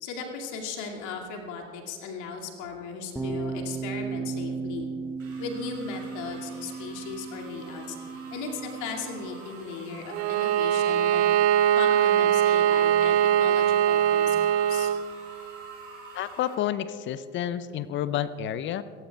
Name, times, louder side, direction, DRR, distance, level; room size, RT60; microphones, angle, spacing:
voice 1, 0.0-4.9 5.4-8.0 8.3-11.3 11.8-14.9, left 5 dB, 50° left, 0 dB, 2.4 m, -37 dB
sound 1, 3.2-9.4, right 5 dB, 5° right, 0.8 m, -35 dB
sound 2, 5.2-16.5, right 3 dB, 80° right, 3.2 m, -47 dB
Bowed string instrument, 10.1-15.0, right 10 dB, 60° right, 0.5 m, -22 dB
voice 2, 16.1-18.8, left 10 dB, 30° left, 16 dB, 0.5 m, -30 dB
27.5 x 14.5 x 2.3 m, 2.4 s
figure-of-eight pair, 70°, 39 cm